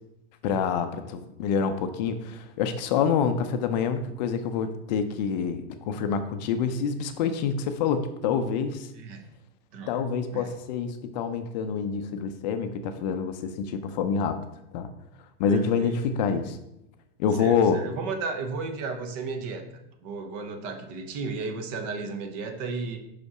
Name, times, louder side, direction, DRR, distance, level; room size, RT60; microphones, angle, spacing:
voice 1, 0.4-8.9 9.9-14.4 14.7-14.9 15.4-16.6 17.2-17.8, left 6 dB, 45° left, 8 dB, 0.6 m, -27 dB
voice 2, 8.9-9.3 9.7-10.0 10.3-10.5 15.5-16.3 17.4-19.6 20.0-23.0, right 4 dB, 40° right, 7 dB, 0.8 m, -34 dB
5.8 x 5.3 x 4.8 m, 0.84 s
supercardioid pair, 165°, 32 cm